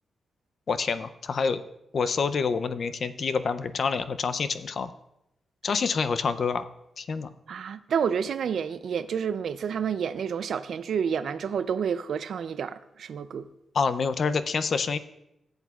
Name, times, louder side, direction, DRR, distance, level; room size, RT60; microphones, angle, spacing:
voice 1, 0.7-1.6 1.9-4.9 5.6-6.6 7.0-7.3 13.7-15.0, left 5 dB, 45° left, 0.4 m, -27 dB
voice 2, 7.5-13.5, right 7 dB, 65° right, 0.4 m, -29 dB
15.0 x 8.0 x 2.3 m
wide cardioid pair, 160°, 0 cm